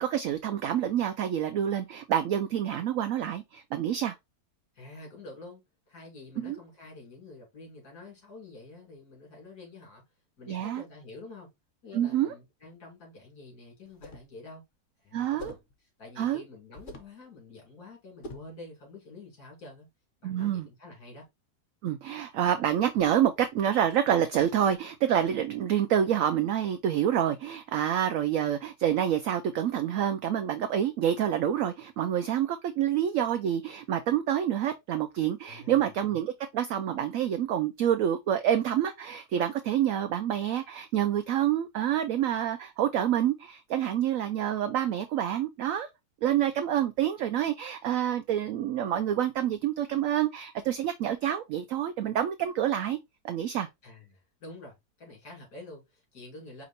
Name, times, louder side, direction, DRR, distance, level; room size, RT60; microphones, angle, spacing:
voice 1, 0.0-4.1 6.4-6.6 10.5-10.8 11.9-12.3 15.1-15.5 16.2-16.4 20.2-20.7 21.8-45.9 46.2-53.0 53.2-53.7, right 10 dB, 70° right, 0.8 m, -27 dB
voice 2, 4.7-5.6 5.9-10.0 10.4-11.5 11.8-14.6 15.0-15.6 16.0-19.9 20.2-21.3 35.5-35.9 53.8-56.6, left 2 dB, 75° left, 3.2 m, -48 dB
sound 1, 13.9-14.3 15.4-15.7 16.7-17.2 18.2-18.6, left 1 dB, 40° left, 0.9 m, -44 dB
5.1 x 2.6 x 4.0 m
omnidirectional pair, 1.7 m